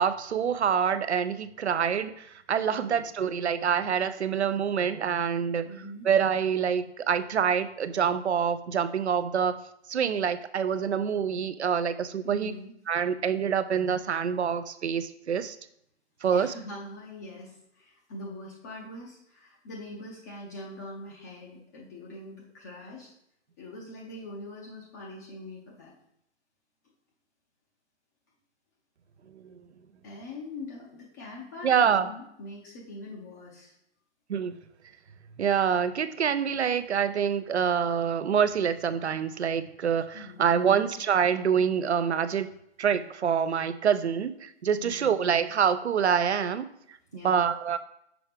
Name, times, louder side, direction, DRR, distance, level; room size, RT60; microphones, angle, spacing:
voice 1, 0.0-5.7 6.0-9.6 9.9-12.5 12.9-15.6 16.2-16.5 29.4-29.6 31.6-32.1 34.3-34.6 35.4-42.5 42.8-46.7 47.1-47.8, right 7 dB, 70° right, 13 dB, 0.6 m, -26 dB
voice 2, 5.6-6.1 12.2-12.7 16.2-23.1 23.6-25.9 30.0-33.7 40.1-40.8 44.8-45.3 47.1-47.5, left 1 dB, 15° left, -3 dB, 0.5 m, -43 dB
6.0 x 4.7 x 3.4 m, 0.76 s
figure-of-eight pair, 130°, 35 cm